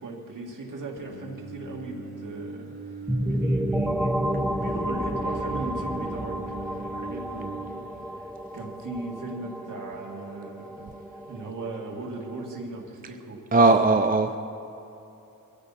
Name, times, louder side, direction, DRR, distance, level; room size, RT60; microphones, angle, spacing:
voice 1, 0.0-2.8 3.3-13.5, right 3 dB, 60° right, 0 dB, 2.1 m, -38 dB
Singing, 1.0-7.5, right 3 dB, 80° right, 4.7 m, -40 dB
sound 1, 3.1-12.6, equal, ahead, 0.8 m, -31 dB
voice 2, 13.5-14.4, right 3 dB, 25° right, 7 dB, 0.4 m, -18 dB
22.0 x 15.0 x 4.2 m, 2.8 s
wide cardioid pair, 125°, 36 cm